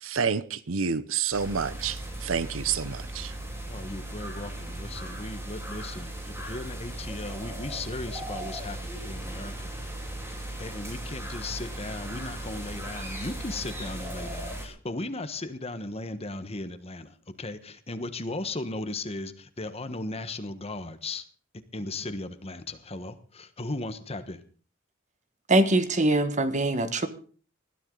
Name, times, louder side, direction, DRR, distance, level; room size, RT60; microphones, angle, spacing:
voice 1, 0.0-3.3, right 6 dB, 80° right, 0.8 m, -29 dB
sound 1, 1.3-14.7, right 1 dB, 15° right, 3.8 m, -37 dB
voice 2, 3.7-9.7 10.6-21.2 21.7-24.4, left 2 dB, 30° left, 1.3 m, -37 dB
voice 3, 25.5-27.1, right 1 dB, 35° right, 1.5 m, -23 dB
20.0 x 13.0 x 3.9 m
head